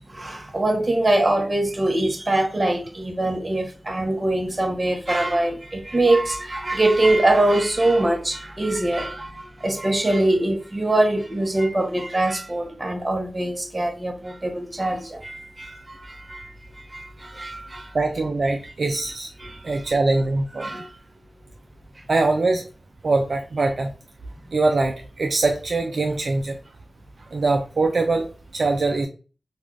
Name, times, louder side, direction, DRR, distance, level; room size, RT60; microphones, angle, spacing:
voice 1, 0.1-9.3 9.6-15.7 16.3-16.5 16.9-17.9 19.4-19.6 20.6-20.9, right 1 dB, 40° right, 0.8 m, -23 dB
voice 2, 17.9-19.3 19.6-20.8 22.1-22.6 23.0-23.9 24.5-26.6 27.3-28.3 28.5-29.1, right 3 dB, 80° right, 0.4 m, -22 dB
2.5 x 2.3 x 3.2 m
cardioid pair, 50°, 0 cm